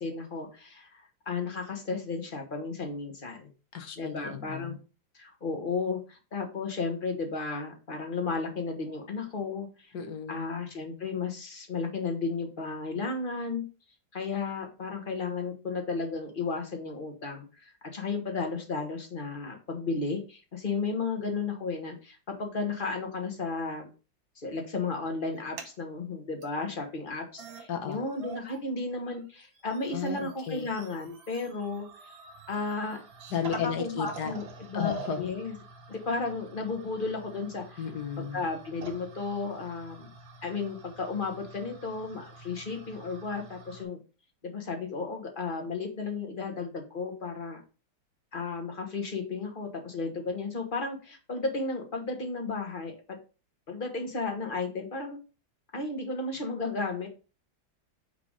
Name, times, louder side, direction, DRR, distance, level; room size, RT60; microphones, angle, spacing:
voice 1, 0.0-3.5 3.9-4.7 5.1-9.9 10.3-13.6 14.1-23.9 24.4-31.9 32.5-33.0 33.4-35.5 35.9-37.8 38.2-40.1 40.4-44.0 44.4-47.6 48.3-52.9 53.7-55.2 55.7-57.1, left 4 dB, 30° left, 3 dB, 1.3 m, -34 dB
voice 2, 3.7-4.8 9.9-10.5 27.7-28.1 29.9-30.6 33.3-34.3 34.7-35.3 37.8-38.4, left 7 dB, 60° left, 6 dB, 1.6 m, -33 dB
sound 1, 25.3-25.7 26.4-26.5 27.1-27.2 27.4-28.6 28.9-43.8, right 5 dB, 80° right, 1.8 m, -47 dB
5.8 x 3.9 x 4.9 m, 0.33 s
omnidirectional pair, 2.1 m